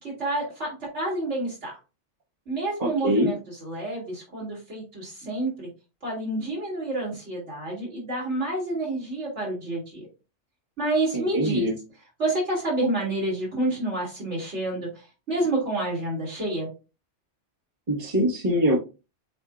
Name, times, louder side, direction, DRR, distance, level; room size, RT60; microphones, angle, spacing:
voice 1, 0.0-1.8 2.5-5.7 6.0-10.1 10.8-11.7 12.2-16.7, right 2 dB, 70° right, -4 dB, 2.8 m, -29 dB
voice 2, 2.8-3.3 11.1-11.7 17.9-18.8, equal, 35° right, -5 dB, 1.4 m, -23 dB
8.0 x 2.7 x 2.4 m, 0.30 s
omnidirectional pair, 1.3 m